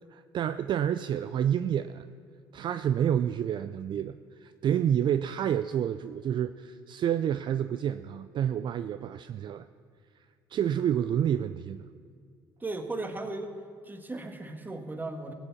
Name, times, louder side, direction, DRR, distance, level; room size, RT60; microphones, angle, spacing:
voice 1, 0.1-2.1 2.5-9.7 10.5-11.8, right 9 dB, 45° right, 12 dB, 0.4 m, -29 dB
voice 2, 12.6-13.5 13.8-15.3, right 2 dB, 15° right, 6 dB, 1.6 m, -36 dB
16.5 x 7.1 x 7.1 m, 2.3 s
hypercardioid pair, 65°, 11 cm